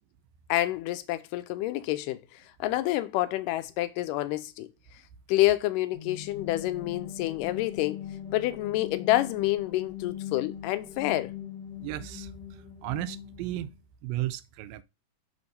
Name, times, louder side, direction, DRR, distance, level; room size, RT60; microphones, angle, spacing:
voice 1, 0.5-2.2 2.6-4.7 5.3-8.0 8.3-11.3, left 16 dB, 80° left, 2.0 m, -28 dB
sound 1, 5.9-13.7, left 10 dB, 45° left, 1.3 m, -41 dB
voice 2, 11.8-12.3 12.8-13.7 14.0-14.8, right 14 dB, 90° right, 2.4 m, -34 dB
6.9 x 3.4 x 5.3 m
omnidirectional pair, 4.1 m